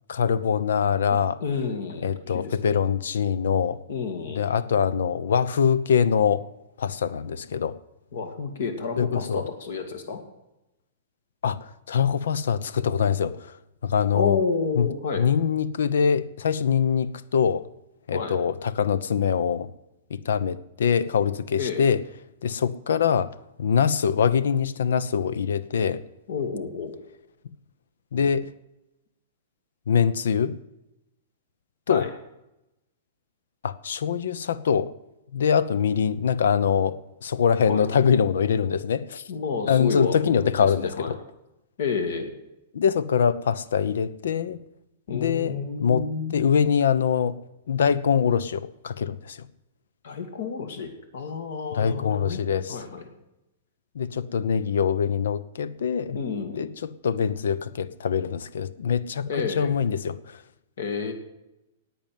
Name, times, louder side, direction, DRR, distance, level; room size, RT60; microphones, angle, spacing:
voice 1, 0.1-1.4 2.0-3.8 4.3-6.4 6.8-7.8 9.0-9.4 11.4-13.6 13.8-14.4 14.8-14.9 15.2-17.6 18.1-19.7 20.1-22.0 22.4-23.3 23.6-26.0 28.1-28.5 29.9-30.5 31.9-32.1 33.6-34.9 35.3-39.2 39.7-41.2 42.7-44.6 45.1-46.1 46.3-47.4 47.7-49.4 51.7-52.8 53.9-56.2 56.5-59.3 59.6-60.4, left 7 dB, 85° left, 17 dB, 0.8 m, -23 dB
voice 2, 1.1-2.8 3.9-4.4 8.1-10.2 14.1-15.3 18.1-18.4 21.5-21.9 26.3-26.9 31.9-32.1 37.6-37.9 39.3-41.2 41.8-42.3 45.1-46.5 50.0-52.4 52.7-53.1 56.1-56.7 59.3-59.7 60.8-61.1, left 5 dB, 60° left, 7 dB, 2.0 m, -30 dB
11.0 x 8.8 x 9.2 m, 0.91 s
supercardioid pair, 175°, 0 cm